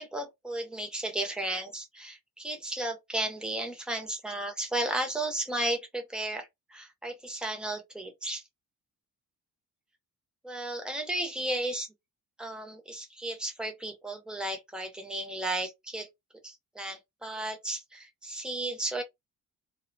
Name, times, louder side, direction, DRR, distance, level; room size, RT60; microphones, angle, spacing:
voice 1, 0.0-8.4 10.4-11.9 12.4-16.1 16.4-19.0, right 1 dB, ahead, 0.4 m, -34 dB
2.4 x 2.0 x 2.5 m
wide cardioid pair, 165°, 38 cm